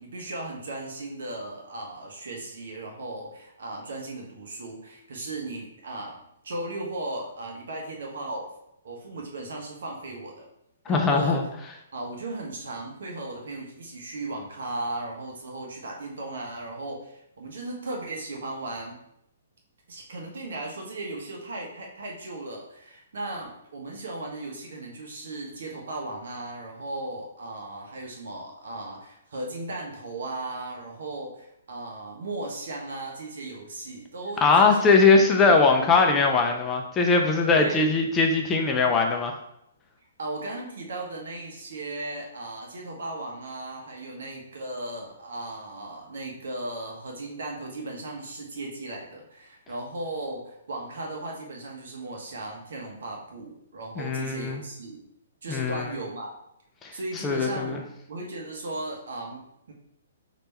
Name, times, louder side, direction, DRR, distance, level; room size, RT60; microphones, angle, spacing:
voice 1, 0.0-6.2 6.4-8.5 8.8-10.5 10.9-11.4 11.9-19.0 19.9-36.3 37.5-37.9 40.2-55.0 55.4-56.3 56.9-59.7, right 2 dB, 70° right, 0 dB, 1.2 m, -36 dB
voice 2, 10.9-11.4 34.4-39.3 54.0-54.6 55.5-55.9 56.8-56.9 57.2-57.8, left 4 dB, 20° left, 2 dB, 0.5 m, -21 dB
3.4 x 2.9 x 4.3 m, 0.79 s
hypercardioid pair, 140°, 0 cm